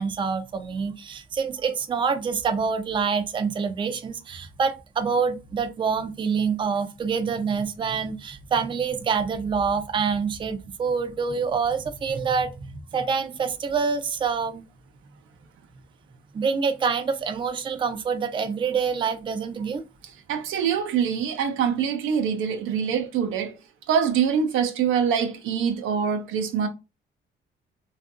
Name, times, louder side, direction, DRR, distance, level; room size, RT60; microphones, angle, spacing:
voice 1, 0.0-14.6 16.3-19.8, right 5 dB, 25° right, 0.4 m, -26 dB
voice 2, 20.3-23.5 23.9-26.7, right 7 dB, 85° right, 0.6 m, -24 dB
2.6 x 2.4 x 2.4 m
cardioid pair, 90°, 20 cm